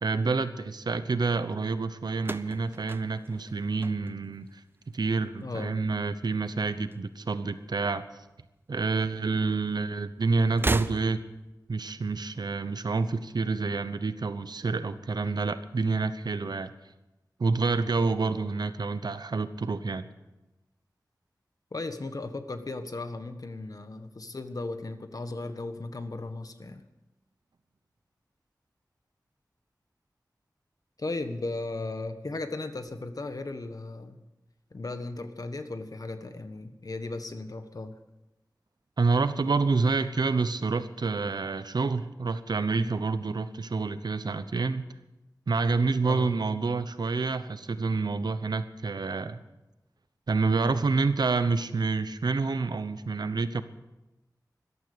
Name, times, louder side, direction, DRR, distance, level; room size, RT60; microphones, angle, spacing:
voice 1, 0.0-4.6 4.9-8.0 8.7-11.2 11.7-16.7 17.4-20.1 39.0-44.9 45.5-49.4 50.3-53.6, right 4 dB, 80° right, 12 dB, 0.9 m, -28 dB
sound 1, 2.2-4.5 4.8-5.4 6.5-7.5 7.7-7.9 9.0-9.1 10.5-11.5, right 2 dB, 30° right, 0.6 m, -35 dB
voice 2, 5.4-5.8 21.7-26.8 31.0-34.2 34.7-37.9 46.0-46.3, left 2 dB, 60° left, 9 dB, 1.4 m, -36 dB
14.5 x 12.5 x 6.8 m, 0.99 s
wide cardioid pair, 50°, 7 cm